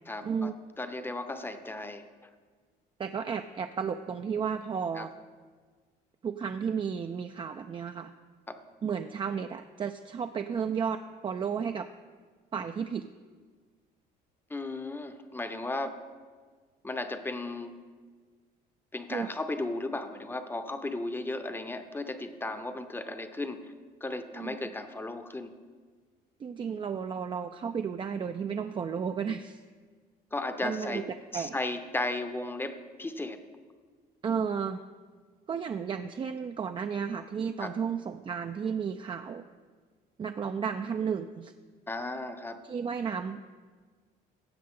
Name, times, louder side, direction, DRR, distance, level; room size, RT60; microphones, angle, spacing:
voice 1, 0.1-2.1 5.0-5.1 8.5-8.6 14.5-16.0 16.8-17.8 18.9-23.7 24.0-25.5 30.3-31.1 31.3-33.4 37.6-37.7 41.9-42.6, left 2 dB, 10° left, 9 dB, 0.7 m, -35 dB
voice 2, 3.0-5.1 6.2-8.1 8.8-11.9 12.5-13.1 19.1-19.3 24.3-24.6 26.4-29.6 30.6-31.0 31.3-31.6 34.2-34.8 35.5-39.4 40.2-41.5 42.6-43.6, right 6 dB, 30° right, 7 dB, 0.4 m, -33 dB
15.5 x 7.6 x 3.7 m, 1.5 s
cardioid pair, 110°, 17 cm